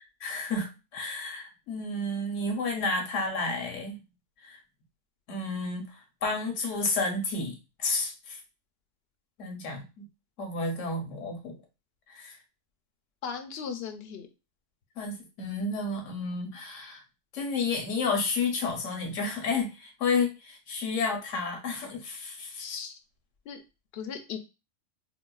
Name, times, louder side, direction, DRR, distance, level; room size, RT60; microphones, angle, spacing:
voice 1, 0.0-4.0 4.4-4.6 5.3-8.4 9.4-10.1 10.4-11.5 12.1-12.4 15.0-17.0 17.3-22.7, left 3 dB, 80° left, 3 dB, 1.1 m, -31 dB
voice 2, 13.2-14.3 22.6-22.9 23.5-23.6 23.9-24.4, left 6 dB, 65° left, 6 dB, 0.7 m, -37 dB
4.7 x 2.1 x 2.2 m, 0.28 s
omnidirectional pair, 1.3 m